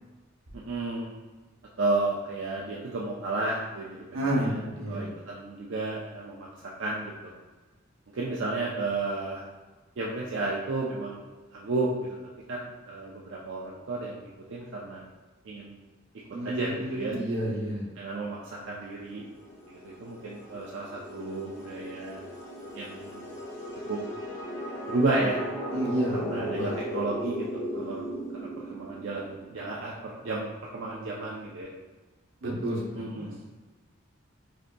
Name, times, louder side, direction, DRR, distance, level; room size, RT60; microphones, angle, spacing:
voice 1, 0.5-1.1 1.8-7.3 8.1-9.4 10.0-12.2 12.5-15.0 15.5-15.8 16.4-17.1 18.0-19.2 19.7-22.2 22.7-23.3 23.9-24.0 24.9-25.4 26.1-27.5 27.7-28.1 28.4-30.5 30.7-31.7 32.9-33.4, right 2 dB, 65° right, -4 dB, 0.5 m, -32 dB
voice 2, 4.1-5.1 16.3-17.9 25.7-26.8 32.4-33.3, right 1 dB, 90° right, -4 dB, 1.0 m, -30 dB
sound 1, 19.0-29.5, equal, 15° left, 1.2 m, -37 dB
4.9 x 2.7 x 2.2 m, 1.3 s
head